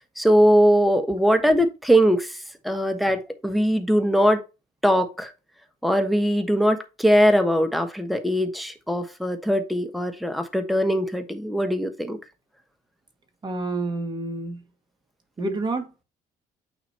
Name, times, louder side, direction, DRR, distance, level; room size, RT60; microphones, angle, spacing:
voice 1, 0.2-2.3 2.6-4.4 4.8-5.3 5.8-12.2, equal, ahead, 1.2 m, -21 dB
voice 2, 13.4-14.6 15.4-16.0, right 2 dB, 25° right, 1.9 m, -29 dB
9.0 x 3.0 x 4.2 m
cardioid pair, 110°, 17 cm